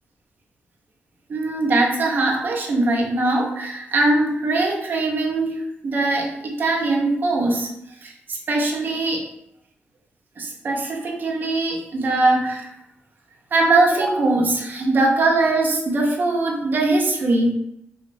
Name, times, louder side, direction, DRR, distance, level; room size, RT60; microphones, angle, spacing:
voice 1, 1.3-7.7 8.0-9.3 10.4-12.7 13.5-17.5, right 2 dB, 45° right, -1 dB, 0.5 m, -21 dB
2.9 x 2.2 x 2.6 m, 0.82 s
wide cardioid pair, 125°, 4 cm